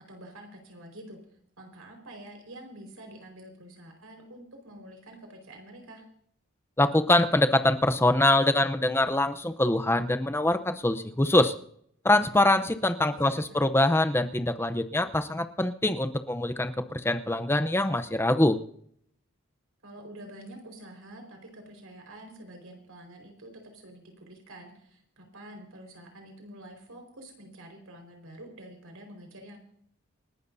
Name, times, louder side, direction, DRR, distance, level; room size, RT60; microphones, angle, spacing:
voice 1, 0.1-1.2 1.6-6.0 13.2-13.6 19.8-29.6, right 1 dB, 90° right, 3 dB, 4.7 m, -47 dB
voice 2, 6.8-11.5 12.0-18.6, left 1 dB, 10° left, 9 dB, 0.7 m, -24 dB
28.0 x 12.5 x 2.7 m, 0.67 s
head